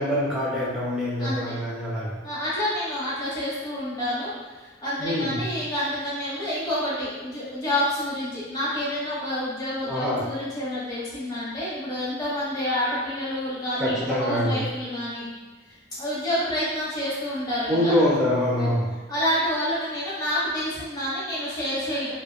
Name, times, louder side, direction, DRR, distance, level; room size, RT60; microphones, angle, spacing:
voice 1, 0.0-2.2 5.0-5.5 9.9-10.3 13.8-14.6 17.7-18.9, left 1 dB, 5° right, -7 dB, 0.4 m, -25 dB
voice 2, 1.2-1.5 2.2-4.3 4.6-15.3 16.0-18.0 18.5-18.7 19.1-22.1, left 1 dB, 20° left, -10 dB, 1.0 m, -28 dB
2.8 x 2.1 x 2.2 m, 1.3 s
head